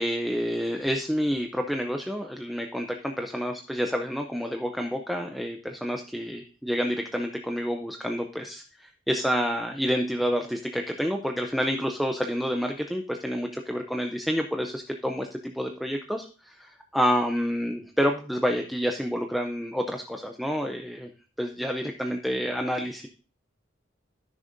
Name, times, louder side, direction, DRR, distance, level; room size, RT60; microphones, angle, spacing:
voice 1, 0.0-21.1 21.4-23.1, equal, ahead, 3 dB, 0.5 m, -29 dB
14.0 x 6.5 x 2.6 m, 0.37 s
head